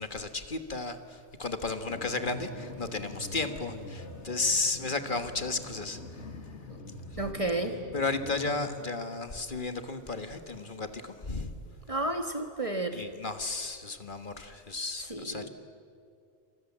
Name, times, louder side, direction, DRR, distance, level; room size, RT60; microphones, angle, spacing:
voice 1, 0.0-6.3 7.1-7.2 7.9-11.5 12.9-15.5, left 3 dB, 45° left, 8 dB, 1.6 m, -33 dB
sound 1, 1.9-8.7, left 2 dB, 70° left, 2.4 m, -44 dB
voice 2, 7.2-7.8 11.9-13.0 15.1-15.5, right 2 dB, 30° right, 5 dB, 1.6 m, -32 dB
29.0 x 26.5 x 7.4 m, 2.4 s
omnidirectional pair, 1.2 m